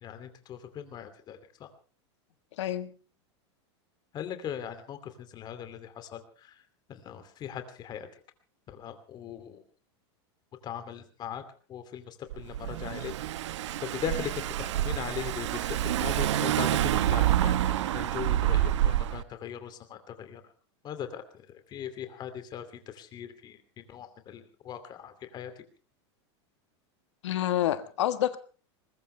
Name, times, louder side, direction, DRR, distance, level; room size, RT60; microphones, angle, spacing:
voice 1, 0.0-1.7 4.1-6.6 6.9-8.1 8.7-9.6 10.6-11.4 11.7-13.1 13.8-20.4 20.8-25.5, left 9 dB, 30° left, 9 dB, 2.7 m, -39 dB
voice 2, 2.6-2.9 27.2-28.4, left 12 dB, 90° left, 11 dB, 1.5 m, -28 dB
Car / Engine, 12.3-19.2, right 12 dB, 85° right, 1.0 m, -27 dB
21.5 x 20.5 x 3.3 m, 0.36 s
supercardioid pair, 150°, 15 cm